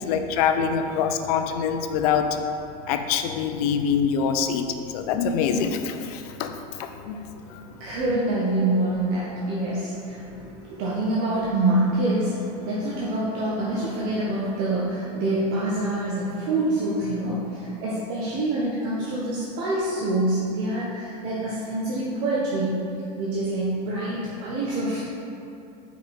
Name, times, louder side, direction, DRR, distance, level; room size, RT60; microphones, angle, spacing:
voice 1, 0.0-2.6 2.9-7.6, left 6 dB, 70° left, 7 dB, 0.6 m, -25 dB
voice 2, 7.3-22.8 23.2-25.0, right 1 dB, 55° right, -6 dB, 1.2 m, -26 dB
5.1 x 4.9 x 5.3 m, 2.8 s
supercardioid pair, 120°, 20 cm